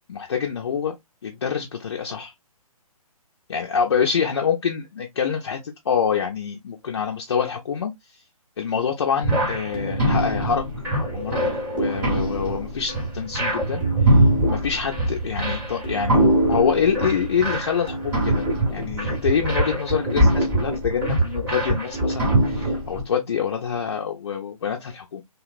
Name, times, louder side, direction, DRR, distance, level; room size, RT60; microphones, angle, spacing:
voice 1, 0.1-0.9 1.2-2.3 3.5-7.9 8.6-10.7 11.1-11.4 11.7-13.8 14.5-18.5 18.7-25.2, left 7 dB, 45° left, 0.4 m, -26 dB
sound 1, 9.2-23.0, right 1 dB, 10° right, 0.8 m, -23 dB
2.8 x 2.0 x 2.3 m
figure-of-eight pair, 135°, 19 cm